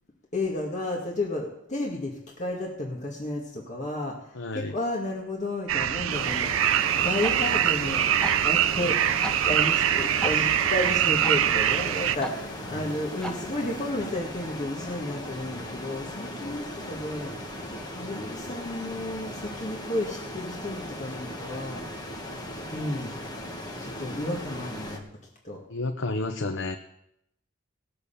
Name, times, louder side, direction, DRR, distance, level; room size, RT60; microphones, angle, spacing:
voice 1, 0.3-17.3 17.9-21.8 22.7-23.1 23.8-25.0 25.4-25.6, left 1 dB, 40° left, -2 dB, 2.0 m, -32 dB
voice 2, 4.3-4.7 10.3-10.5 12.7-12.9 25.7-26.8, left 2 dB, 65° left, 5 dB, 0.8 m, -31 dB
sound 1, 5.7-12.2, right 10 dB, 80° right, 0.5 m, -24 dB
sound 2, 6.1-25.0, left 1 dB, 20° left, 1.6 m, -38 dB
sound 3, 6.6-13.9, equal, 5° left, 1.0 m, -41 dB
18.0 x 6.8 x 7.0 m, 0.79 s
head